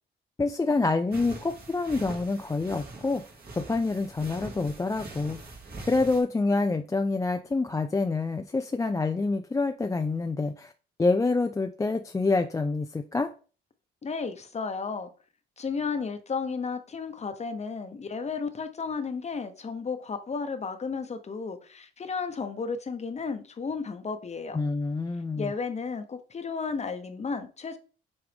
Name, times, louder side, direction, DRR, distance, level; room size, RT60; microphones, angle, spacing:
voice 1, 0.4-3.2 3.6-5.4 5.9-10.7 11.0-13.3 24.5-25.5, left 3 dB, 15° left, 0.4 m, -27 dB
sound 1, 1.1-6.2, right 2 dB, 50° right, 2.1 m, -43 dB
voice 2, 14.0-15.1 15.6-24.6 25.4-27.8, left 5 dB, 35° left, 1.0 m, -33 dB
7.9 x 3.5 x 3.5 m
cardioid pair, 90°, 20 cm